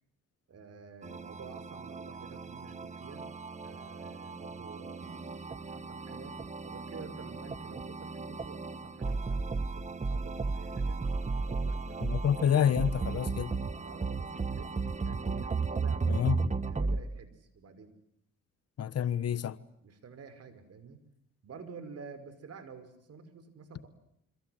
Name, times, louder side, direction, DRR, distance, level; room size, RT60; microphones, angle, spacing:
voice 1, 0.5-3.3 3.6-6.4 6.6-11.1 11.4-12.2 12.5-12.6 13.8-16.2 16.7-17.9 19.8-21.0 21.4-23.9, right 5 dB, 55° right, 5.6 m, -49 dB
sound 1, 1.0-17.0, right 4 dB, 25° right, 1.4 m, -35 dB
voice 2, 12.0-13.5 16.1-16.4 18.8-19.6, left 9 dB, 55° left, 1.3 m, -28 dB
27.0 x 26.5 x 7.9 m
cardioid pair, 90°, 30 cm